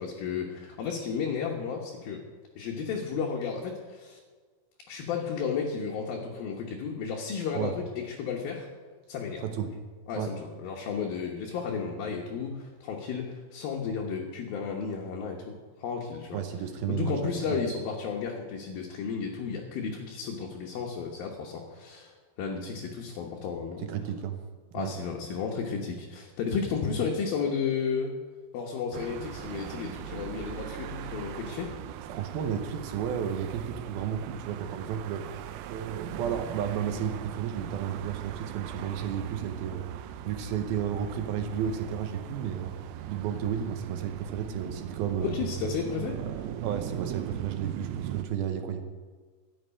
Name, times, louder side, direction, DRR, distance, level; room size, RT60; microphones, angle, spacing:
voice 1, 0.0-2.2 2.6-4.2 4.9-8.7 9.1-9.4 10.1-16.4 16.9-23.8 24.7-28.2 28.5-31.7 45.2-46.2, left 6 dB, 65° left, -1 dB, 2.6 m, -33 dB
voice 2, 9.4-9.8 10.1-10.3 16.3-17.6 23.8-24.4 24.7-24.9 32.1-40.0 40.3-45.4 45.9-48.8, right 8 dB, 75° right, 7 dB, 2.4 m, -33 dB
sound 1, 28.9-48.3, right 11 dB, 90° right, 2.1 m, -40 dB
12.5 x 7.2 x 9.9 m, 1.5 s
omnidirectional pair, 5.2 m